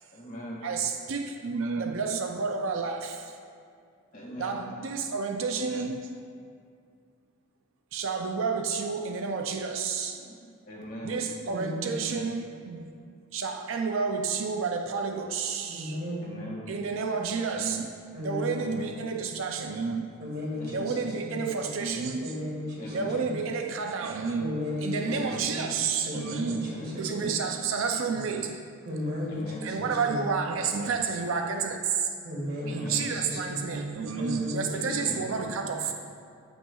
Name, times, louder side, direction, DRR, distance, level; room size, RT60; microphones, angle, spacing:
voice 1, 0.1-0.6 4.1-4.6 10.1-10.4 10.7-11.2 16.2-16.7 18.4-18.9 20.6-21.0 22.8-23.3 24.9-25.4 26.5-27.0 29.3-29.7 32.6-33.1 34.7-35.3 35.9-36.0, equal, 40° left, -5 dB, 1.8 m, -40 dB
voice 2, 0.6-3.3 4.4-6.1 7.9-10.2 11.0-13.0 13.3-16.0 16.7-20.1 20.6-22.5 22.8-28.6 29.6-32.1 32.7-35.9, right 5 dB, 65° right, 4 dB, 0.4 m, -30 dB
voice 3, 11.5-11.9 15.7-16.3 18.1-18.6 20.2-20.9 21.2-21.4 22.2-22.9 23.2-23.4 24.4-25.7 26.1-27.4 28.9-30.2 32.2-33.7 34.2-35.0, left 1 dB, 45° right, -4 dB, 1.9 m, -35 dB
14.0 x 5.8 x 2.3 m, 2.2 s
head